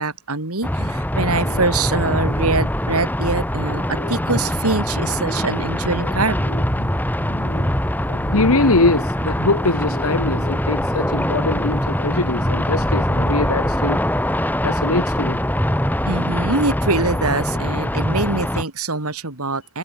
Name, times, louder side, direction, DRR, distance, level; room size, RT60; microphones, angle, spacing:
voice 1, 0.0-6.6 16.0-19.8, right 3 dB, 85° right, 3.3 m, -24 dB
sound 1, 0.6-18.6, equal, 10° left, 4.0 m, -22 dB
sound 2, 0.8-2.9 3.3-8.9 9.3-12.9, left 1 dB, 55° left, 7.4 m, -35 dB
voice 2, 8.3-14.0 14.6-15.4, left 2 dB, 75° left, 1.8 m, -22 dB
head